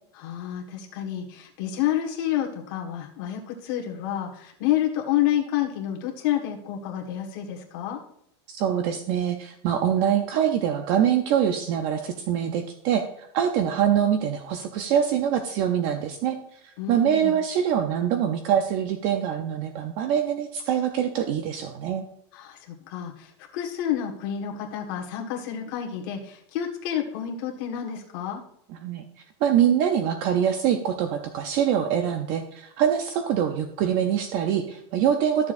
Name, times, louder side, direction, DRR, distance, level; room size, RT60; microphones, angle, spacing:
voice 1, 0.1-8.0 16.8-17.4 22.3-28.4, left 11 dB, 50° left, 0 dB, 1.5 m, -29 dB
voice 2, 8.5-16.4 16.6-22.0 28.7-29.0 29.4-35.5, right 9 dB, 35° right, 7 dB, 0.5 m, -24 dB
13.0 x 7.0 x 2.6 m, 0.72 s
supercardioid pair, 175°, 14 cm